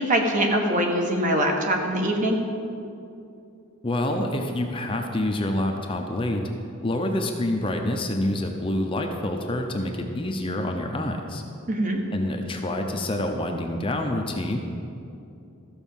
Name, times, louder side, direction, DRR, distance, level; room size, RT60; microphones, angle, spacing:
voice 1, 0.0-2.4 11.7-12.0, right 1 dB, 40° right, 2 dB, 1.3 m, -23 dB
voice 2, 3.8-6.4 6.8-11.4 12.1-14.6, left 1 dB, 25° left, 3 dB, 0.7 m, -27 dB
13.5 x 5.2 x 7.1 m, 2.7 s
head